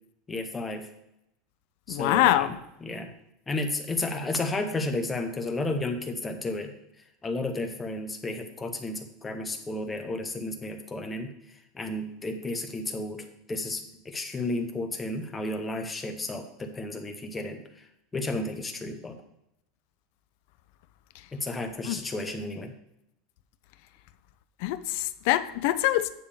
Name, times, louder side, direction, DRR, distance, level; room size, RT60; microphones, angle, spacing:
voice 1, 0.3-0.9 1.9-2.5 2.8-3.1 3.5-6.7 7.2-17.9 18.1-19.2 21.3-22.7, left 2 dB, 10° left, 5 dB, 0.7 m, -32 dB
voice 2, 1.9-2.6 21.9-22.0 24.6-26.1, left 14 dB, 55° left, 12 dB, 0.4 m, -24 dB
9.1 x 3.5 x 6.6 m, 0.83 s
supercardioid pair, 180°, 0 cm